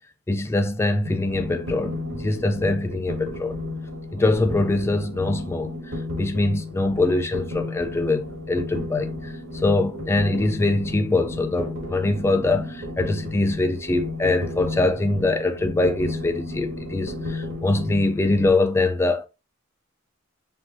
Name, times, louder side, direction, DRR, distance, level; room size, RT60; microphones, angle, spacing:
voice 1, 0.3-3.6 4.1-5.7 6.2-19.3, left 2 dB, 15° left, 0.4 m, -23 dB
sound 1, 1.0-18.5, left 2 dB, 70° right, 1.7 m, -33 dB
5.5 x 2.6 x 2.6 m
head